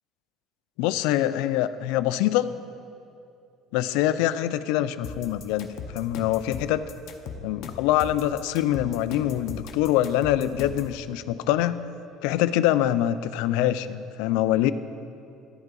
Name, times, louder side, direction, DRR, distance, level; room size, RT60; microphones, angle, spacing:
voice 1, 0.8-2.5 3.7-5.7 5.9-6.9 7.4-11.9 12.2-14.7, left 13 dB, 85° left, 14 dB, 0.3 m, -24 dB
sound 1, 5.0-10.9, left 6 dB, 60° left, 0.7 m, -38 dB
12.0 x 8.0 x 3.9 m, 2.6 s
cardioid pair, 160°, 0 cm